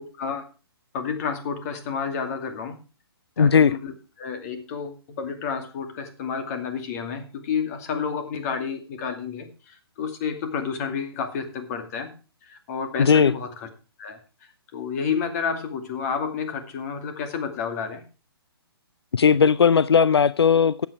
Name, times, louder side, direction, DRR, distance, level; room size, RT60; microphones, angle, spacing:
voice 1, 0.2-0.5 0.9-2.8 3.4-12.1 12.4-13.7 14.0-14.2 14.7-18.0, left 6 dB, 40° left, 2.4 m, -30 dB
voice 2, 3.4-3.8 13.0-13.3 19.1-20.7, left 6 dB, 85° left, 0.4 m, -17 dB
12.5 x 8.2 x 4.7 m
hypercardioid pair, 140°, 13 cm